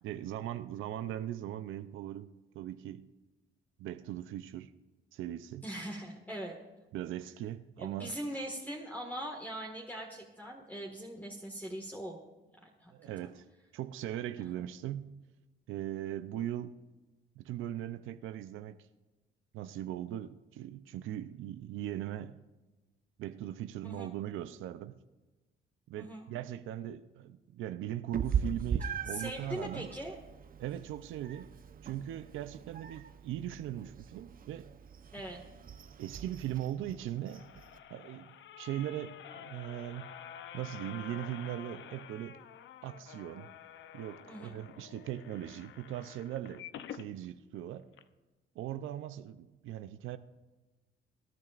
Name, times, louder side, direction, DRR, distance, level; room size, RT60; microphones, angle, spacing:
voice 1, 0.0-3.1 3.8-4.7 5.1-5.7 6.9-8.2 12.9-13.4 13.7-15.1 15.7-16.8 17.4-18.8 19.5-22.4 23.2-25.0 25.9-29.9 30.6-31.5 31.8-34.7 36.0-37.4 37.9-40.1 40.5-42.4 42.8-43.5 43.9-47.9 48.5-50.2, right 12 dB, 85° right, 0.6 m, -39 dB
voice 2, 5.6-6.5 7.8-12.2 12.8-13.3 14.4-14.6 23.8-24.1 25.9-26.3 29.1-30.2 35.1-35.4 44.3-44.6, right 1 dB, 10° left, 1.7 m, -41 dB
Meow, 28.1-37.8, right 7 dB, 45° right, 0.8 m, -40 dB
sound 1, 36.9-47.1 47.6-47.7 47.9-48.0, left 10 dB, 70° left, 0.7 m, -49 dB
23.5 x 10.5 x 2.5 m
cardioid pair, 90°, 20 cm